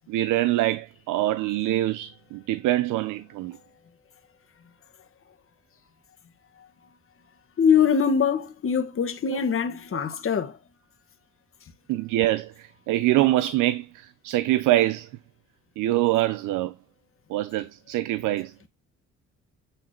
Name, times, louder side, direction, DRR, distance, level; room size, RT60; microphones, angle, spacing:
voice 1, 0.1-3.6 9.3-9.4 11.9-15.1 15.8-16.7 17.3-18.5, right 15 dB, 90° right, 0.6 m, -24 dB
voice 2, 7.6-10.6, left 7 dB, 45° left, 1.5 m, -23 dB
9.1 x 4.0 x 4.4 m
cardioid pair, 90°, 30 cm